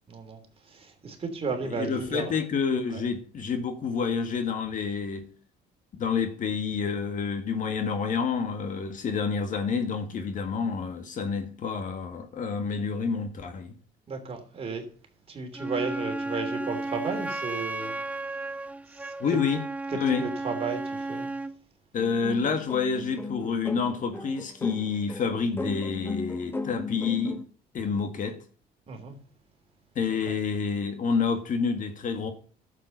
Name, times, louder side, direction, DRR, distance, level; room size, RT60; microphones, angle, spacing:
voice 1, 0.1-2.3 2.9-3.0 14.1-14.9 15.3-18.0 18.9-19.1 19.9-21.3 28.9-29.1, right 4 dB, 35° right, 3.1 m, -34 dB
voice 2, 1.6-5.3 5.9-13.7 19.2-19.6 19.9-20.2 21.9-27.4 27.7-28.4 30.0-32.3, left 5 dB, 50° left, 1.8 m, -28 dB
Wind instrument woodwind instrument, 15.5-21.6, right 2 dB, 10° right, 0.5 m, -33 dB
sound 1, 22.0-27.4, left 3 dB, 15° left, 1.0 m, -36 dB
11.5 x 7.5 x 5.4 m
cardioid pair, 110°, 17 cm